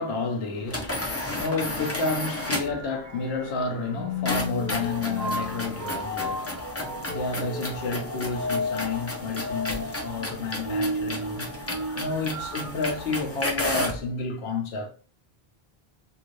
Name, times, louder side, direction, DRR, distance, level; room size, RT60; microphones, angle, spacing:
voice 1, 0.0-11.5 11.9-14.9, left 3 dB, 80° left, 1.0 m, -31 dB
sound 1, 0.7-2.8 4.3-14.1, left 1 dB, 20° left, 0.4 m, -33 dB
sound 2, 0.9-12.7, left 1 dB, 20° right, 1.1 m, -34 dB
2.7 x 2.5 x 3.1 m
omnidirectional pair, 1.0 m